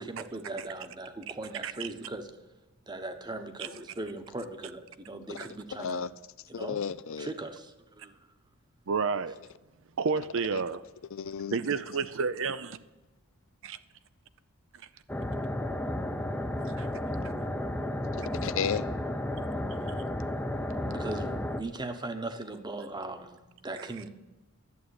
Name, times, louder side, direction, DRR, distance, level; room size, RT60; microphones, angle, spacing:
voice 1, 0.0-2.2 2.9-4.8 5.1-6.0 6.5-6.8 7.4-7.6 8.0-8.1 20.9-23.4 23.6-24.1, right 2 dB, 20° right, 1.0 m, -38 dB
voice 2, 5.3-6.1 6.5-7.3 10.5-10.6 11.1-11.6 18.1-18.9, left 6 dB, 65° left, 0.5 m, -34 dB
voice 3, 8.9-9.4 10.0-10.8 11.5-12.8 13.6-13.8 16.7-16.9 23.8-24.0, right 5 dB, 60° right, 0.6 m, -31 dB
sound 1, 15.1-21.6, left 1 dB, 10° left, 0.7 m, -33 dB
11.5 x 7.8 x 9.5 m
head